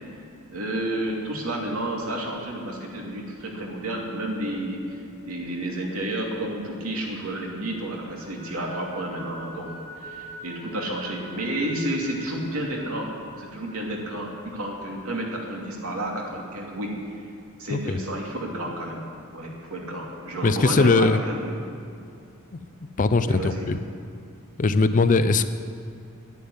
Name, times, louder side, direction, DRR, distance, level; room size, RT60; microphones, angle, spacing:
voice 1, 0.5-9.7 10.0-16.9 17.6-19.0 19.3-21.5 23.2-23.7, right 1 dB, 75° right, -1 dB, 2.6 m, -31 dB
sound 1, 4.6-7.3 7.6-17.0, right 1 dB, 35° right, 2.3 m, -46 dB
voice 2, 20.4-21.2 23.0-23.8 24.6-25.5, left 3 dB, 35° left, 12 dB, 0.5 m, -20 dB
10.5 x 9.5 x 9.5 m, 2.4 s
head